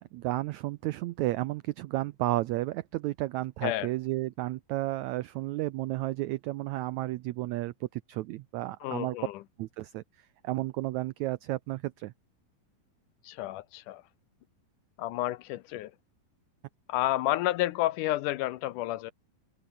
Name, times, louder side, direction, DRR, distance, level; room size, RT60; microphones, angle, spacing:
voice 1, 0.1-9.2 9.6-10.0 10.4-12.1, right 17 dB, 85° right, 1.6 m, -32 dB
voice 2, 8.8-9.4 13.2-14.0 15.0-15.9 16.9-19.1, left 15 dB, 75° left, 2.1 m, -30 dB
omnidirectional pair, 4.0 m